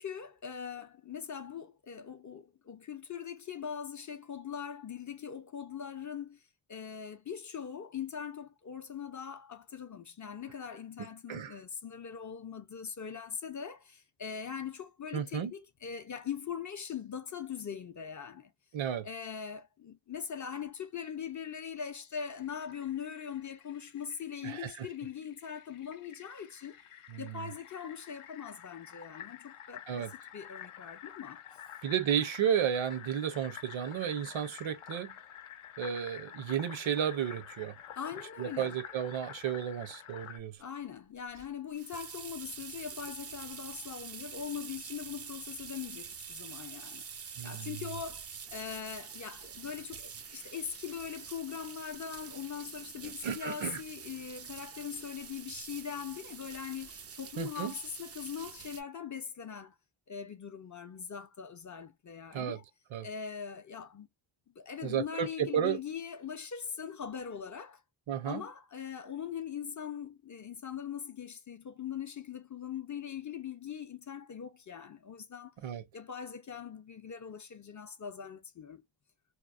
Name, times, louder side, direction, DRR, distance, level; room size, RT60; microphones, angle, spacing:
voice 1, 0.0-6.4 6.7-18.5 19.0-26.8 27.2-31.4 38.0-38.8 40.6-59.7 60.1-62.6 63.0-64.1 64.6-67.8 68.3-75.5 75.9-78.8, left 7 dB, 40° left, 0.5 m, -41 dB
voice 2, 11.0-11.6 15.1-15.5 18.7-19.1 24.4-24.9 27.1-27.4 29.9-30.1 31.8-35.1 35.8-37.7 38.4-40.6 47.4-47.8 53.2-53.8 57.4-57.7 62.3-62.6 62.9-63.1 64.8-65.8 68.1-68.4 75.6-75.8, right 9 dB, 65° right, 0.7 m, -33 dB
Fill (with liquid), 22.4-40.4, left 10 dB, 75° left, 0.7 m, -49 dB
sound 1, 41.3-58.8, right 6 dB, 30° right, 0.4 m, -46 dB
2.9 x 2.0 x 2.3 m
wide cardioid pair, 105°, 50 cm